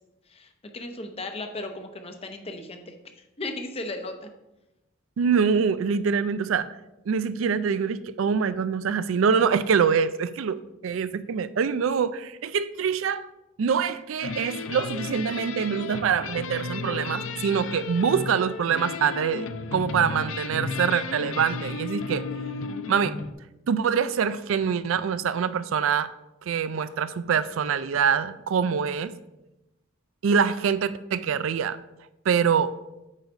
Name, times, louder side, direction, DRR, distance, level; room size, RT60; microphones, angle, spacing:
voice 1, 0.3-2.9 3.4-4.3, left 2 dB, 30° left, 6 dB, 0.8 m, -36 dB
voice 2, 5.2-6.7 7.1-10.6 10.8-13.3 13.6-22.2 22.9-23.2 23.7-26.1 26.5-29.1 30.2-31.8 32.3-32.7, right 6 dB, 70° right, 14 dB, 0.4 m, -24 dB
sound 1, 14.2-23.3, left 4 dB, 70° left, 0.5 m, -34 dB
9.0 x 4.0 x 5.2 m, 0.96 s
head